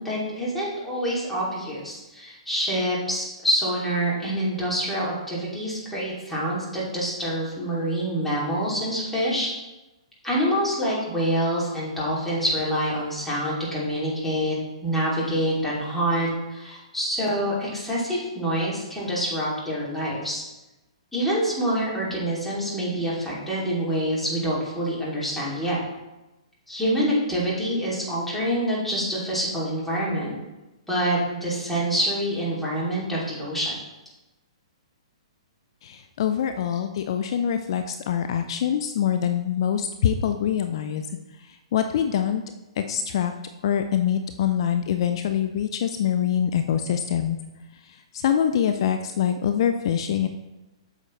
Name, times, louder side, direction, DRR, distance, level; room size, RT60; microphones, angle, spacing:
voice 1, 0.0-9.5 10.2-14.5 14.8-20.4 21.1-25.8 26.7-30.3 30.9-33.8, equal, 5° left, -7 dB, 2.9 m, -26 dB
voice 2, 35.8-41.1 41.5-42.4 42.8-43.3 43.6-47.4 47.9-50.3, left 9 dB, 55° left, 8 dB, 0.5 m, -24 dB
8.5 x 6.4 x 3.3 m, 1.0 s
hypercardioid pair, 125°, 3 cm